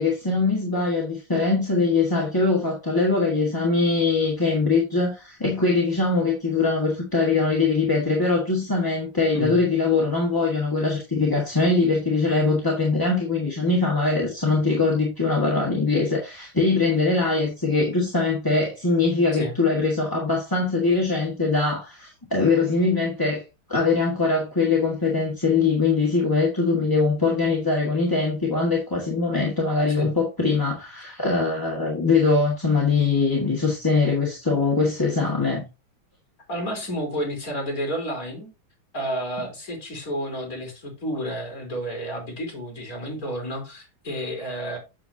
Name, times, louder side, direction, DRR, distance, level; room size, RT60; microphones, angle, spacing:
voice 1, 0.0-23.4 23.7-35.7, left 3 dB, 10° left, 1.4 m, -22 dB
voice 2, 36.5-38.5 38.9-44.8, equal, 45° left, 3.8 m, -30 dB
7.6 x 7.4 x 2.7 m
omnidirectional pair, 2.3 m